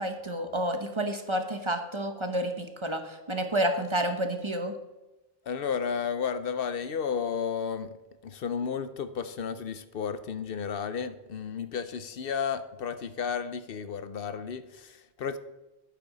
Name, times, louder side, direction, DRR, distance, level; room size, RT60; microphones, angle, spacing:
voice 1, 0.0-3.0 3.3-4.7, right 1 dB, 30° right, 0.9 m, -29 dB
voice 2, 5.5-7.9 8.2-15.4, left 6 dB, 65° left, 0.8 m, -33 dB
12.0 x 9.2 x 4.0 m
omnidirectional pair, 1.0 m